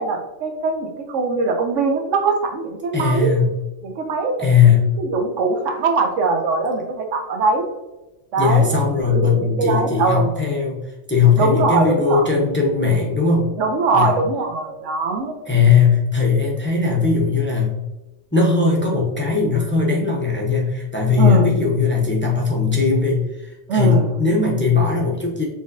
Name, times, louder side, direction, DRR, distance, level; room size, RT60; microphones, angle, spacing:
voice 1, 0.0-3.3 3.8-4.5 5.0-7.7 8.3-8.7 9.1-10.3 11.4-12.3 13.6-15.3 21.2-21.5 23.7-24.1, right 4 dB, 80° right, 4 dB, 1.1 m, -21 dB
voice 2, 2.9-3.5 4.4-4.9 8.4-13.5 13.9-14.1 15.4-17.7 18.3-25.4, left 5 dB, 10° left, -2 dB, 0.6 m, -18 dB
4.9 x 3.7 x 2.6 m, 1.0 s
omnidirectional pair, 1.3 m